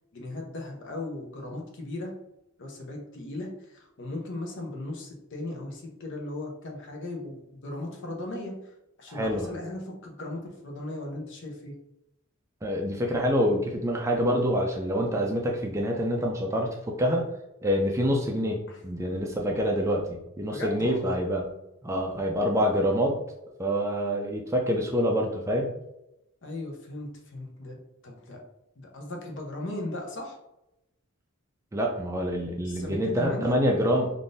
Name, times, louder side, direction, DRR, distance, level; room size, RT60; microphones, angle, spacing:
voice 1, 0.1-2.1 2.6-3.5 3.7-8.5 9.0-11.7 18.7-18.8 20.5-21.1 26.4-27.8 28.0-28.4 28.8-30.3 32.7-33.6, left 2 dB, 60° left, 0 dB, 0.7 m, -37 dB
voice 2, 9.1-9.5 12.6-17.3 17.6-21.5 21.8-23.2 23.6-25.7 31.7-34.1, equal, 15° right, 0 dB, 0.3 m, -26 dB
3.5 x 2.5 x 2.5 m, 0.88 s
head